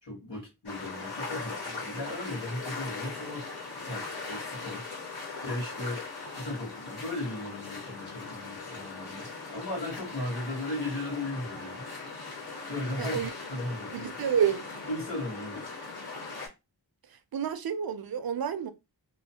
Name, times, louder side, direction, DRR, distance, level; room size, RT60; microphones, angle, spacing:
voice 1, 0.0-3.4 3.9-4.9 5.4-6.0 6.3-11.9 12.7-13.2 13.5-14.1 14.9-15.6, left 1 dB, 85° left, 1.7 m, -36 dB
sound 1, 0.7-16.5, left 4 dB, 65° left, 1.4 m, -40 dB
voice 2, 13.0-13.3 13.9-14.6 17.1-18.7, right 8 dB, 60° right, 0.5 m, -29 dB
3.1 x 2.1 x 2.8 m
wide cardioid pair, 65°, 41 cm